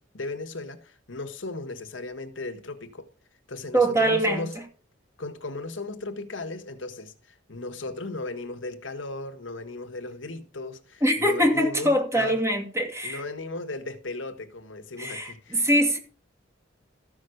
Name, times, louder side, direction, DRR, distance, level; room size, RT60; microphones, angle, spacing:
voice 1, 0.0-3.1 3.5-4.6 5.2-12.4 13.0-15.7, left 2 dB, 85° left, 1.5 m, -36 dB
voice 2, 3.7-4.6 11.0-13.2 15.0-16.0, right 1 dB, 15° right, 2.6 m, -23 dB
14.0 x 6.3 x 6.5 m
head